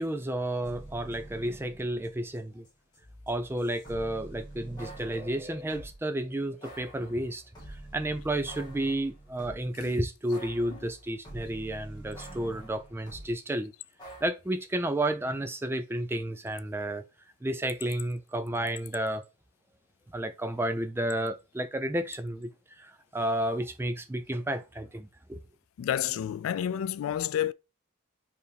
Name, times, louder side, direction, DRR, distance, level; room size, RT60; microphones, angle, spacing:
voice 1, 0.0-2.7 3.3-13.7 14.2-17.0 17.4-19.2 20.1-22.5 22.8-25.4, right 1 dB, 10° right, 0.4 m, -32 dB
sound 1, 0.6-2.4 2.6-6.0 6.6-9.8 10.3-13.3 14.0-14.3, right 1 dB, 20° left, 1.6 m, -47 dB
voice 2, 25.8-27.5, left 10 dB, 85° left, 0.3 m, -30 dB
4.6 x 3.5 x 3.3 m
head